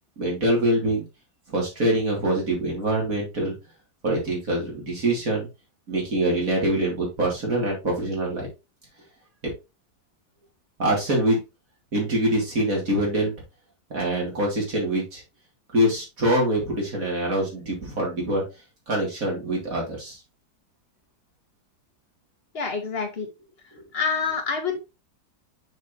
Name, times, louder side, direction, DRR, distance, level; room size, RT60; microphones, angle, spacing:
voice 1, 0.2-1.0 1.5-3.5 4.0-5.5 5.9-8.5 10.8-11.4 11.9-13.3 13.9-15.2 15.7-18.4 18.9-20.2 23.7-23.8, right 1 dB, 55° right, -2 dB, 3.6 m, -24 dB
voice 2, 22.5-23.3 23.9-24.7, left 5 dB, 35° left, 4 dB, 1.8 m, -27 dB
6.4 x 6.3 x 3.1 m, 0.26 s
omnidirectional pair, 1.8 m